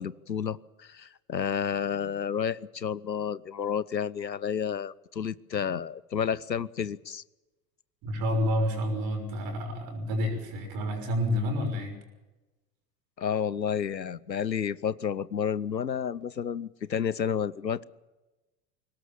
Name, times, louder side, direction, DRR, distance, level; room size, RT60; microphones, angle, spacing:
voice 1, 0.0-7.2 13.2-17.8, left 7 dB, 85° left, 21 dB, 0.7 m, -31 dB
voice 2, 8.0-12.0, left 1 dB, 45° right, 4 dB, 6.2 m, -29 dB
22.5 x 18.5 x 7.2 m, 1.1 s
figure-of-eight pair, 80°, 49 cm